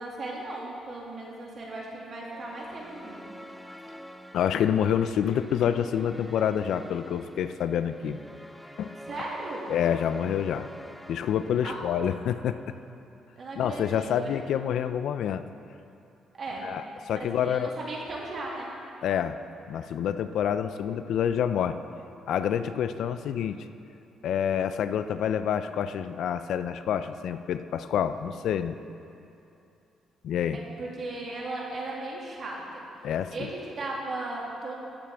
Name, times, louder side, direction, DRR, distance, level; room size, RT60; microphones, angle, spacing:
voice 1, 0.0-3.3 9.0-9.8 11.6-11.8 13.4-14.3 16.4-16.7 17.1-18.7 30.5-32.8 33.3-34.7, right 2 dB, 50° right, -3 dB, 2.2 m, -36 dB
sound 1, 2.1-12.5, equal, ahead, 0.5 m, -47 dB
voice 2, 4.3-8.2 8.8-8.9 9.7-10.7 11.1-12.6 13.6-15.4 16.6-16.8 17.1-17.7 19.0-19.4 19.7-21.8 22.3-23.6 24.2-28.8 30.2-30.6 33.0-33.5, left 9 dB, 75° left, 11 dB, 0.4 m, -27 dB
15.5 x 7.5 x 3.5 m, 2.7 s
cardioid pair, 90°, 0 cm